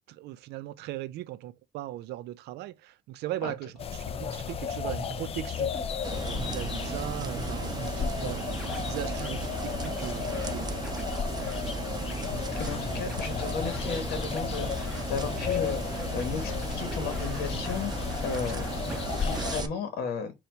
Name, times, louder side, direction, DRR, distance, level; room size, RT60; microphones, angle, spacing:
voice 1, 0.1-5.7 6.2-10.8, right 14 dB, 80° right, 0.5 m, -39 dB
Scratching (performance technique), 3.7-19.6, right 1 dB, ahead, 1.7 m, -46 dB
sound 1, 3.8-19.6, left 7 dB, 35° left, 0.4 m, -34 dB
sound 2, 6.0-19.7, right 5 dB, 25° right, 0.6 m, -36 dB
voice 2, 12.6-18.7 19.2-20.3, left 5 dB, 65° left, 1.2 m, -35 dB
4.1 x 2.3 x 4.4 m
cardioid pair, 110°, 17 cm